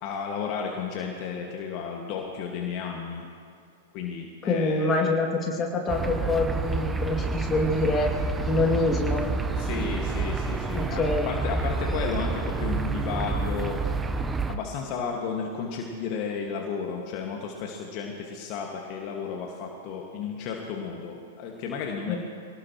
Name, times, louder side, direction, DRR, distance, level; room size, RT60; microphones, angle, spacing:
voice 1, 0.0-3.3 3.9-5.2 9.6-13.8 14.5-22.2, left 6 dB, 40° left, 1 dB, 1.8 m, -33 dB
voice 2, 4.5-8.1 8.4-9.2 10.8-11.3 22.1-22.2, left 2 dB, 25° left, 0 dB, 2.5 m, -25 dB
sound 1, 5.9-14.6, right 4 dB, 15° right, 0.9 m, -29 dB
25.5 x 18.5 x 3.1 m, 2.4 s
figure-of-eight pair, 100°, 0 cm